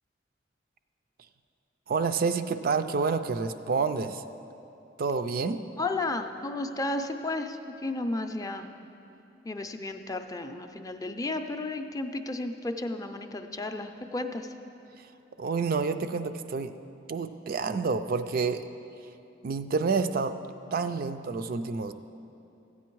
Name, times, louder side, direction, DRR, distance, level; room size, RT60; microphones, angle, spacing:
voice 1, 1.9-4.2 5.0-5.6 15.0-15.1 15.4-16.7 17.1-18.6 19.4-20.4 20.7-21.9, right 4 dB, 50° right, 9 dB, 0.4 m, -28 dB
voice 2, 5.8-8.7 9.4-14.5, left 2 dB, 20° left, 6 dB, 0.5 m, -33 dB
14.0 x 8.5 x 4.6 m, 2.8 s
head